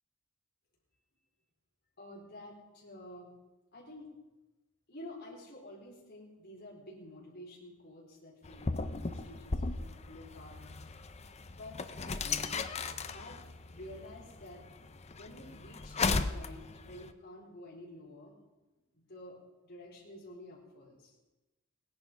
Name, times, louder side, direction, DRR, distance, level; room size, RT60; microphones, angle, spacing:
voice 1, 2.0-3.3 3.7-4.1 4.9-10.6 11.4-12.5 13.1-14.6 15.1-18.3 18.9-21.1, left 1 dB, 50° left, -3 dB, 4.0 m, -50 dB
sound 1, 8.4-17.1, left 4 dB, 30° left, 0.6 m, -37 dB
17.5 x 10.5 x 5.2 m, 1.1 s
head